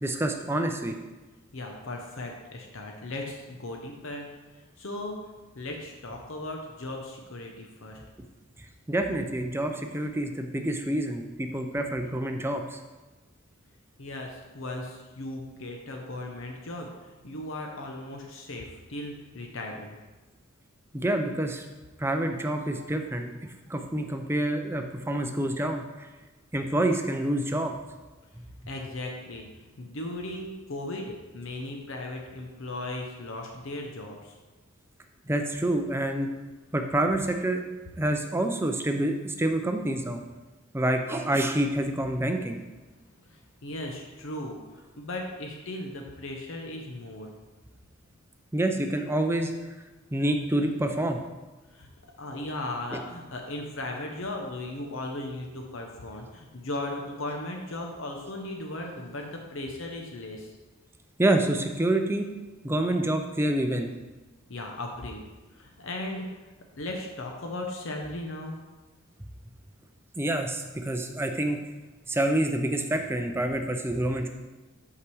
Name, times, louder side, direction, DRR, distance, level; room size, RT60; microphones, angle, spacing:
voice 1, 0.0-0.9 8.9-12.8 20.9-21.6 22.0-23.3 23.7-26.1 26.5-27.7 35.3-36.3 36.7-37.6 38.0-40.2 40.7-42.6 48.5-49.5 50.1-51.2 52.9-53.0 61.2-62.3 62.6-63.9 70.2-71.6 72.1-74.3, right 1 dB, 10° right, 4 dB, 0.5 m, -27 dB
voice 2, 1.5-4.3 4.8-5.3 5.6-8.0 14.0-20.0 28.7-29.5 29.8-34.4 43.3-44.6 45.0-47.3 51.7-51.9 52.2-60.5 64.5-65.2 65.5-66.3 66.8-68.6, left 1 dB, 65° left, 1 dB, 0.8 m, -37 dB
5.8 x 4.8 x 6.2 m, 1.2 s
head